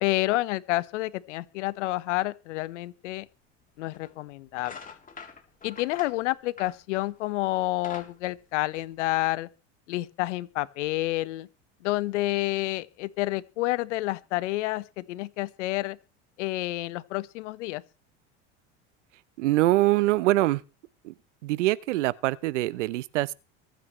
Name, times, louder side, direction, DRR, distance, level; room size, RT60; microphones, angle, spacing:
voice 1, 0.0-3.3 3.8-4.8 5.6-9.5 9.9-11.5 11.8-16.0 16.4-17.8, left 18 dB, 80° left, 1.3 m, -29 dB
sound 1, 3.9-4.1 4.5-7.2 7.6-9.3, left 5 dB, 25° left, 3.4 m, -45 dB
voice 2, 19.4-20.6 21.0-21.1 21.4-23.3, right 17 dB, 85° right, 0.9 m, -24 dB
24.5 x 9.3 x 3.2 m
supercardioid pair, 100°, 35 cm